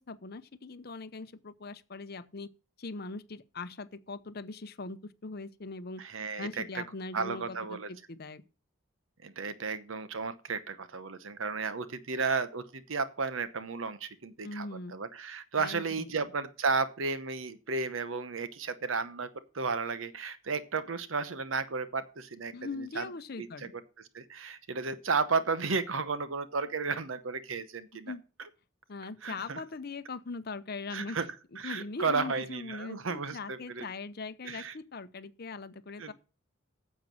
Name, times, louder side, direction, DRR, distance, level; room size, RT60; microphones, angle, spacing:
voice 1, 0.0-2.5 2.8-6.0 6.4-8.4 14.4-15.0 15.6-16.3 22.5-23.7 28.1-28.2 28.9-31.2 31.6-36.1, left 3 dB, 50° left, 0.8 m, -41 dB
voice 2, 6.0-6.8 7.1-7.9 9.2-14.7 14.9-19.3 19.5-22.5 23.0-23.1 23.4-23.5 24.1-28.1 29.2-29.6 30.9-31.3 31.6-33.9 34.4-34.7 36.0-36.1, right 4 dB, 75° right, 0.9 m, -33 dB
9.2 x 7.4 x 6.1 m
head